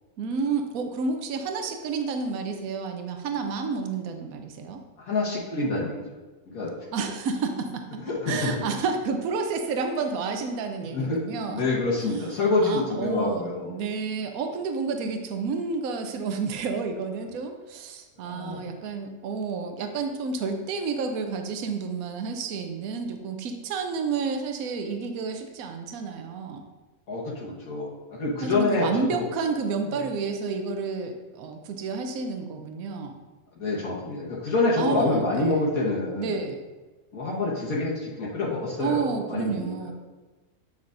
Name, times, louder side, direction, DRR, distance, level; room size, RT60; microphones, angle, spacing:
voice 1, 0.2-4.8 6.9-8.0 8.3-11.6 12.6-26.7 28.4-33.2 34.8-35.7 36.2-36.6 38.8-39.9, right 4 dB, 80° right, 5 dB, 1.1 m, -30 dB
voice 2, 5.0-6.0 6.5-6.7 8.0-8.5 10.9-13.7 18.2-18.6 27.1-29.3 29.9-30.0 33.6-36.3 37.1-39.7, left 3 dB, 80° left, -5 dB, 1.7 m, -27 dB
9.4 x 5.8 x 2.6 m, 1.2 s
omnidirectional pair, 1.5 m